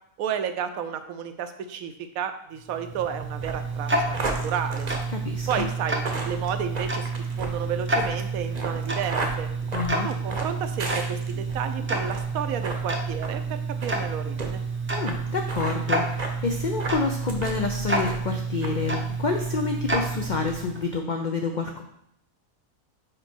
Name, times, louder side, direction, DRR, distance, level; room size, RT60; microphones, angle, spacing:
voice 1, 0.2-4.2 4.4-4.9 5.5-9.5 10.0-14.6, right 8 dB, 80° right, 8 dB, 1.0 m, -32 dB
Tick-tock, 2.6-20.9, right 3 dB, 20° right, 0.3 m, -29 dB
sound 1, 3.4-11.6 12.0-12.3 12.6-12.8 13.2-13.3 13.8-14.0 14.4-14.5 15.1-15.2 15.4-15.8 16.2-16.4 16.8-17.6 17.9-18.3 18.6-18.7, right 3 dB, 40° right, 0.7 m, -34 dB
voice 2, 5.1-5.7 9.7-10.1 14.9-21.8, left 4 dB, 75° left, 3 dB, 0.4 m, -28 dB
5.1 x 4.6 x 4.4 m, 0.74 s
omnidirectional pair, 1.5 m